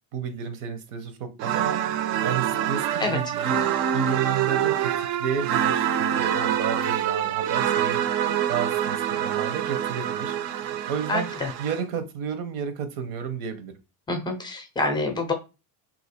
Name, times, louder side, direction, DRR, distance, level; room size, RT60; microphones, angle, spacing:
voice 1, 0.1-1.8 2.2-3.6 3.9-8.0 8.5-10.3 10.9-11.3 11.6-13.7, right 7 dB, 85° right, 0.9 m, -32 dB
sound 1, 1.4-11.8, right 10 dB, 55° right, 0.5 m, -26 dB
voice 2, 11.1-11.5 14.1-15.3, left 2 dB, 10° left, 0.4 m, -27 dB
2.8 x 2.4 x 4.2 m
cardioid pair, 165°, 43 cm